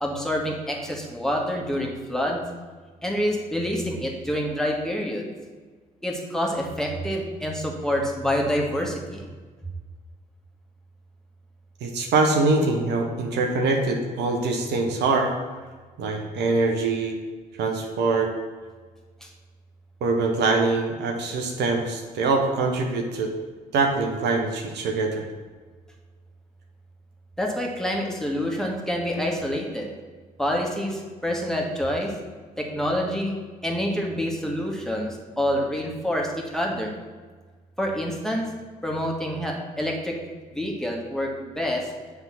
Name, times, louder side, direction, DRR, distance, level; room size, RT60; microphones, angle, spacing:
voice 1, 0.0-2.4 3.0-5.3 6.0-9.3 19.2-19.3 27.4-29.9 30.4-32.1 32.6-33.4 33.6-36.9 37.8-38.5 38.8-40.2 40.6-41.9, equal, ahead, -1 dB, 1.8 m, -27 dB
voice 2, 11.8-15.3 16.0-17.2 17.6-18.3 20.0-23.3 23.7-25.3, right 3 dB, 65° right, 2 dB, 1.0 m, -23 dB
7.7 x 3.6 x 5.9 m, 1.4 s
hypercardioid pair, 45°, 19 cm